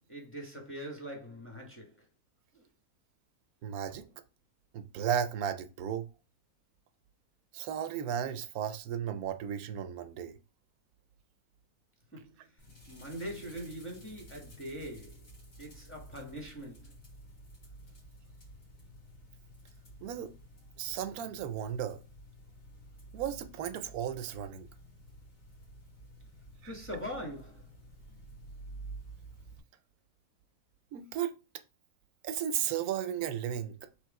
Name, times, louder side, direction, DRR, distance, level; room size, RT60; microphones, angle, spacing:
voice 1, 0.1-1.9 2.5-2.6 12.1-12.3 12.9-15.3 15.6-16.9 26.6-27.7, equal, 10° left, 1.1 m, -42 dB
voice 2, 3.6-4.1 4.7-6.1 7.5-10.4 20.0-20.3 20.8-22.0 23.1-24.7 26.6-26.7 30.9-31.3 32.2-33.7, right 9 dB, 75° right, 1.0 m, -34 dB
sound 1, 12.6-29.6, right 1 dB, 60° left, 2.0 m, -51 dB
3.6 x 3.0 x 4.6 m
omnidirectional pair, 1.6 m